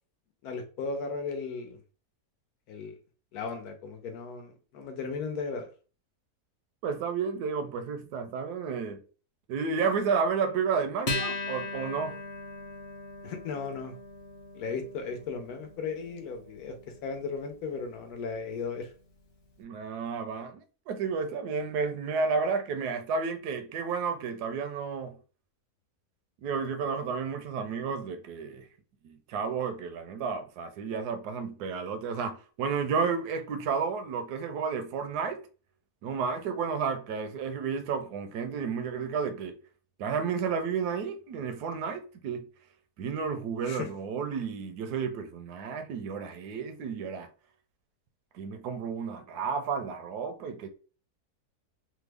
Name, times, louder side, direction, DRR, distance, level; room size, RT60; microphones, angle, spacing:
voice 1, 0.4-1.8 2.7-2.9 3.3-5.7 13.2-13.9 14.5-16.8 17.0-18.9 43.6-43.9, left 5 dB, 75° left, 1.2 m, -36 dB
voice 2, 6.8-9.0 9.5-12.2 19.6-25.2 26.4-28.7 29.0-35.4 36.0-39.6 40.0-42.5 43.0-47.3 48.3-50.7, right 5 dB, 85° right, 1.1 m, -32 dB
Acoustic guitar, 11.1-17.9, left 3 dB, 40° left, 0.5 m, -39 dB
3.4 x 2.0 x 3.3 m
omnidirectional pair, 1.6 m